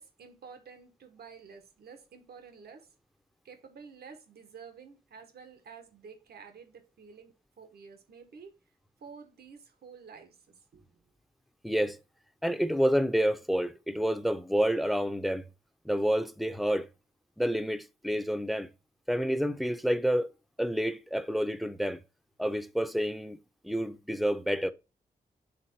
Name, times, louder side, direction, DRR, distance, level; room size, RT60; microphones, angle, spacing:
voice 1, 0.0-2.9 3.4-8.6 9.0-11.0, right 6 dB, 90° right, 1.3 m, -50 dB
voice 2, 11.6-12.0 12.4-15.5 15.8-16.9 17.4-18.7 19.1-20.3 20.6-22.0 22.4-24.7, equal, ahead, 0.7 m, -29 dB
7.9 x 3.7 x 4.3 m
cardioid pair, 70°, 16 cm